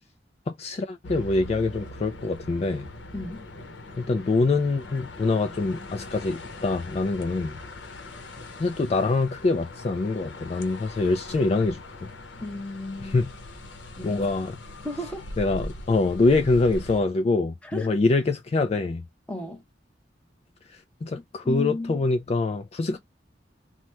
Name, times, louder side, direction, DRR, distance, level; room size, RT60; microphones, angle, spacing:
voice 1, 0.5-2.9 4.0-7.6 8.6-12.1 13.0-13.3 14.0-14.5 15.4-19.1 20.7-23.0, left 3 dB, 35° left, 0.3 m, -25 dB
sound 1, 1.0-17.0, left 1 dB, 90° left, 0.8 m, -41 dB
voice 2, 3.1-3.4 12.4-13.2 14.0-14.3 14.8-15.2 17.6-17.9 19.3-19.6 21.4-22.0 22.9-23.0, left 1 dB, 5° left, 0.8 m, -34 dB
2.9 x 2.1 x 3.2 m
head